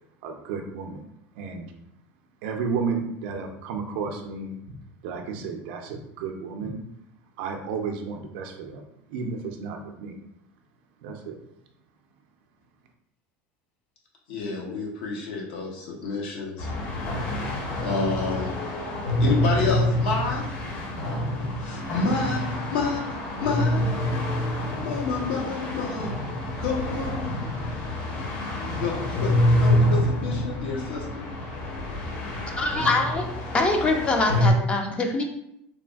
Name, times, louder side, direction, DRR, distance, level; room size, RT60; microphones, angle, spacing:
voice 1, 0.2-1.1 1.3-1.7 2.4-4.8 5.0-6.8 7.4-10.2 11.0-11.4, right 5 dB, 75° right, 3 dB, 0.4 m, -32 dB
voice 2, 14.3-16.7 17.8-18.5 19.2-20.5 20.9-22.4 22.7-24.0 24.3-26.1 26.6-27.3 28.7-31.3, left 4 dB, 85° left, -1 dB, 0.9 m, -29 dB
sound 1, 16.6-34.5, left 1 dB, 50° left, 0.8 m, -27 dB
voice 3, 32.6-35.2, left 2 dB, 20° left, 3 dB, 0.3 m, -24 dB
3.2 x 2.5 x 2.3 m, 0.77 s
supercardioid pair, 145°, 6 cm